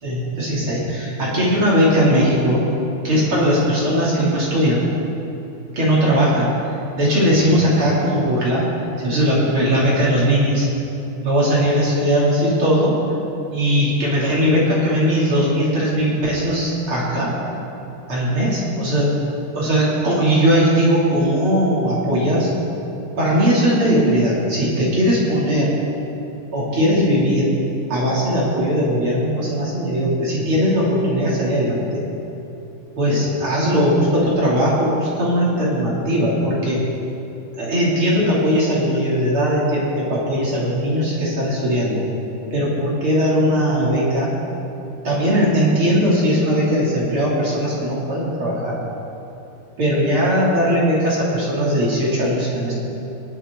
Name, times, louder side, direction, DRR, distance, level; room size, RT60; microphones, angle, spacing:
voice 1, 0.0-2.6 3.0-4.8 5.7-6.5 6.9-10.7 11.2-12.9 13.5-17.3 18.1-19.2 19.5-22.5 23.2-25.7 26.5-27.5 27.9-32.0 33.0-36.8 37.5-42.0 42.5-44.3 45.0-48.8 49.8-52.7, equal, 40° right, -6 dB, 2.8 m, -19 dB
25.0 x 8.4 x 3.6 m, 2.8 s
omnidirectional pair, 4.3 m